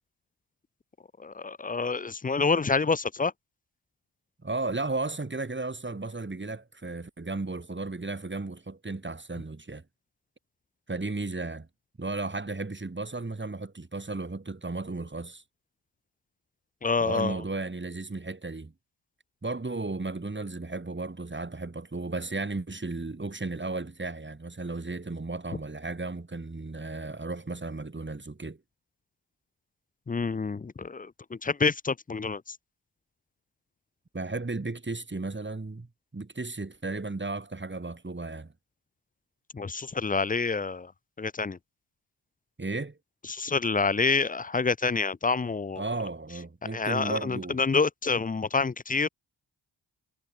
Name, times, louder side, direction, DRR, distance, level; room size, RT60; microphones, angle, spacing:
voice 1, 1.2-3.3 16.8-17.4 30.1-32.6 39.5-40.9 41.2-41.6 43.3-45.8 46.7-49.1, left 4 dB, 20° left, 0.5 m, -27 dB
voice 2, 4.4-9.8 10.9-11.7 12.0-15.4 17.0-18.7 19.4-28.6 34.1-35.9 36.1-38.5 42.6-43.0 45.8-47.6, right 3 dB, 25° right, 5.0 m, -34 dB
cardioid pair, 55°, 44 cm